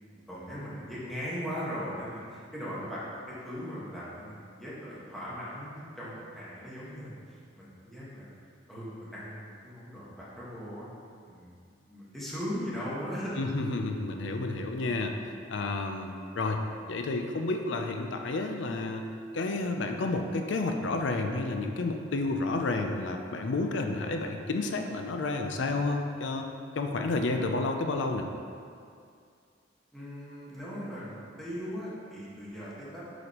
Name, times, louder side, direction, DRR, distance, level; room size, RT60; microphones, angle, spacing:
voice 1, 0.0-8.3 8.7-10.9 11.3-13.3 29.9-33.0, equal, ahead, -9 dB, 1.4 m, -39 dB
voice 2, 13.4-15.2 15.5-19.1 19.3-26.5 26.8-28.3, left 3 dB, 70° left, 4 dB, 0.5 m, -30 dB
7.9 x 5.0 x 3.0 m, 2.3 s
head